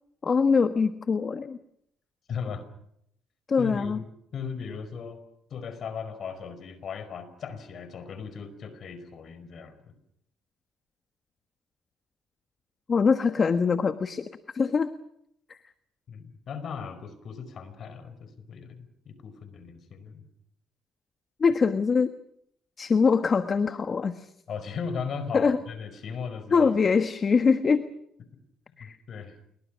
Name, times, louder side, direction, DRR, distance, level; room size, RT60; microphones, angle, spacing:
voice 1, 0.2-1.6 3.5-4.0 12.9-14.9 15.5-15.6 21.4-22.1 22.8-24.3 25.3-25.6 26.5-27.8 28.8-29.0, left 5 dB, 40° left, 10 dB, 1.3 m, -23 dB
voice 2, 2.3-2.6 3.6-4.0 4.3-5.2 5.5-9.9 16.1-20.2 24.5-26.7 28.8-29.4, left 6 dB, 60° left, 12 dB, 4.9 m, -37 dB
29.0 x 22.5 x 6.3 m, 0.73 s
supercardioid pair, 65°, 0 cm